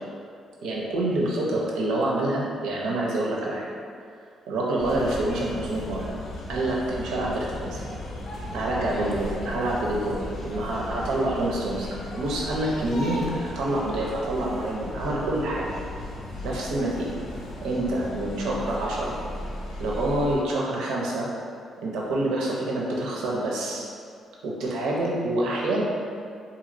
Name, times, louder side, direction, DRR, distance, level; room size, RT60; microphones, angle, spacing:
voice 1, 0.6-3.7 4.5-6.1 6.5-7.9 8.5-11.9 12.1-15.7 16.4-17.1 17.6-19.2 19.8-21.3 21.8-23.9 24.4-25.8, right 1 dB, 90° right, -3 dB, 0.5 m, -27 dB
sound 1, 4.8-20.4, left 1 dB, 60° left, 0.5 m, -36 dB
3.0 x 2.7 x 2.6 m, 2.3 s
cardioid pair, 90°, 0 cm